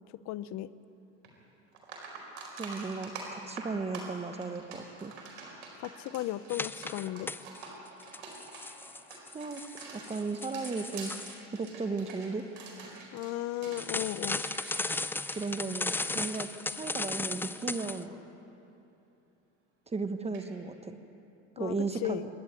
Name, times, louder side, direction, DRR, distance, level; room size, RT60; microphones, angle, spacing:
voice 1, 0.3-0.7 5.8-7.3 13.1-14.4 21.6-22.3, left 15 dB, 50° left, 16 dB, 0.8 m, -35 dB
sound 1, 1.2-1.3 1.7-17.4 17.6-17.9 20.3-20.5, right 4 dB, 85° right, 4.6 m, -47 dB
voice 2, 2.6-5.1 9.3-9.6 9.9-11.1 11.5-12.4 12.8-13.0 15.3-18.2 19.9-21.0 21.6-22.2, right 4 dB, 20° right, 9 dB, 1.2 m, -35 dB
sound 2, 6.5-7.7 8.0-11.4 13.8-18.0, left 3 dB, 5° left, 0.4 m, -36 dB
26.0 x 10.5 x 9.7 m, 2.8 s
supercardioid pair, 95°, 35 cm